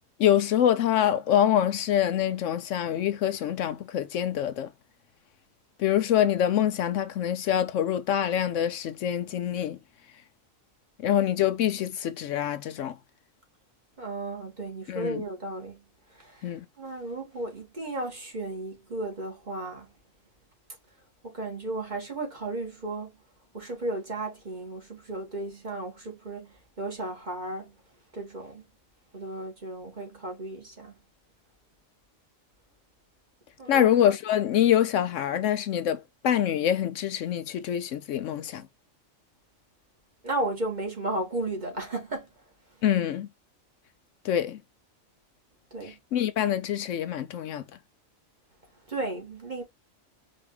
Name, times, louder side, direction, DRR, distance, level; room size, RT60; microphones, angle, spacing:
voice 1, 0.2-4.7 5.8-9.8 11.0-13.0 14.9-15.2 16.4-16.6 33.7-38.6 42.8-43.3 44.2-44.6 45.8-47.6, left 10 dB, 75° left, 0.9 m, -25 dB
voice 2, 14.0-15.8 16.1-19.9 21.2-23.1 23.5-27.7 28.1-28.6 29.1-30.9 33.6-33.9 40.2-42.3 45.7-46.0 48.9-49.6, right 2 dB, 35° right, 1.9 m, -34 dB
5.2 x 2.8 x 3.2 m
omnidirectional pair, 1.4 m